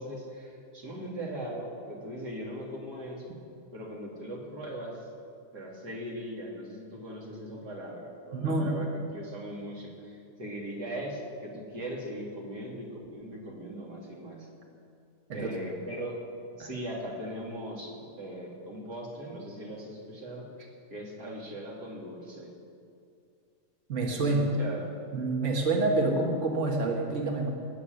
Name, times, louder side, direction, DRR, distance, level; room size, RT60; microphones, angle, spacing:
voice 1, 0.0-3.4 3.7-5.1 5.5-14.5 15.3-16.2 16.5-20.5 20.9-22.5 24.1-24.9, right 1 dB, 65° right, -3 dB, 3.5 m, -39 dB
voice 2, 8.3-8.7 15.3-15.5 16.6-16.7 23.9-24.4 25.1-27.5, right 2 dB, 45° right, 1 dB, 2.1 m, -27 dB
19.5 x 7.2 x 9.5 m, 2.4 s
omnidirectional pair, 1.8 m